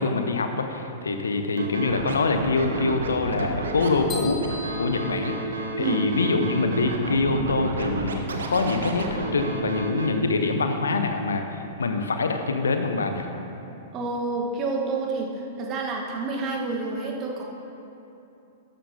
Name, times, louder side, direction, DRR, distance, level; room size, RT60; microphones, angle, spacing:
voice 1, 0.0-4.5 4.8-5.4 5.7-13.3, left 3 dB, 70° left, 6 dB, 0.8 m, -25 dB
Scratching (performance technique), 1.6-10.1, right 3 dB, 65° right, 1.0 m, -31 dB
sound 1, 4.1-6.0, left 2 dB, 20° left, 2.3 m, -39 dB
voice 2, 13.9-15.3 15.6-17.4, right 3 dB, 30° right, 0 dB, 1.3 m, -28 dB
13.0 x 9.9 x 2.8 m, 2.9 s
figure-of-eight pair, 100°, 0 cm